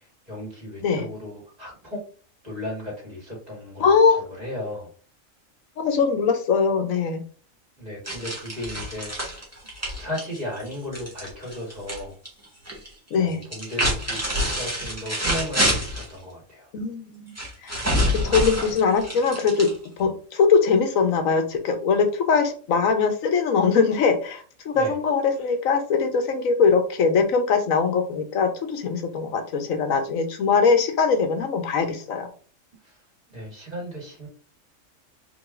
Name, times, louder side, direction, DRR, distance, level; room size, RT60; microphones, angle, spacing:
voice 1, 0.3-2.0 2.4-4.0 4.4-4.9 7.8-9.1 9.9-12.2 13.2-16.7 24.7-24.9 32.8-33.0 33.3-34.3, left 1 dB, 30° right, -3 dB, 2.3 m, -35 dB
voice 2, 3.8-4.2 5.8-7.2 13.1-13.4 16.7-17.3 17.6-17.8 18.2-19.7 20.0-32.3, left 5 dB, 85° left, 7 dB, 1.3 m, -21 dB
sound 1, 8.0-12.0 12.2-12.9 13.4-16.1 17.3-20.0, equal, 10° right, 1.6 m, -27 dB
4.8 x 3.2 x 2.5 m, 0.41 s
omnidirectional pair, 1.4 m